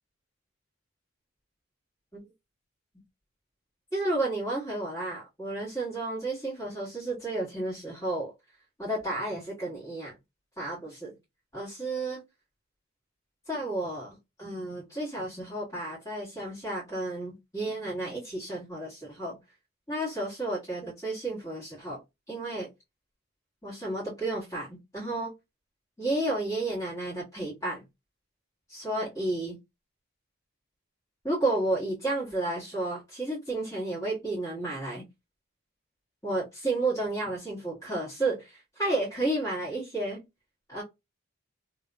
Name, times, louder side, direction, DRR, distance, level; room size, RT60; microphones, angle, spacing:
voice 1, 3.9-8.3 8.8-10.1 10.6-11.1 11.5-12.2 13.5-19.4 19.9-22.0 22.3-22.7 23.6-25.3 26.0-27.8 28.7-29.6 31.2-35.1 36.2-40.2 40.7-40.8, right 2 dB, 15° left, 1.8 m, -32 dB
3.3 x 2.8 x 2.4 m
head